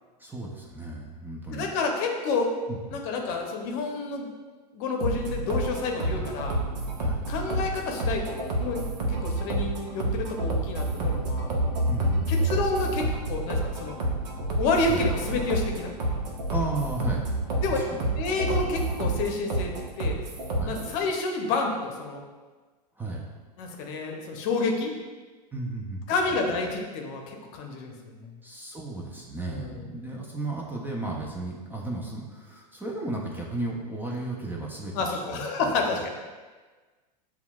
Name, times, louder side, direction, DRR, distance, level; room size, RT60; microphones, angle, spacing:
voice 1, 0.2-1.7 2.7-3.0 6.1-6.3 7.0-7.2 11.9-12.5 14.9-15.0 16.5-17.3 17.7-18.0 20.5-20.7 23.0-23.2 25.5-26.1 28.4-36.1, right 2 dB, 10° right, -3 dB, 0.5 m, -34 dB
voice 2, 1.5-2.5 2.9-4.3 4.7-6.5 7.3-8.3 8.6-8.8 9.1-11.5 12.3-14.0 14.6-15.9 17.6-17.9 18.2-19.7 20.0-20.2 20.6-22.2 23.6-24.9 26.1-28.3 29.5-29.8 34.9-36.1, left 3 dB, 50° left, 2 dB, 0.7 m, -29 dB
sound 1, 5.0-21.0, right 1 dB, 80° right, 0.8 m, -28 dB
6.9 x 2.3 x 2.3 m, 1.4 s
hypercardioid pair, 105°, 21 cm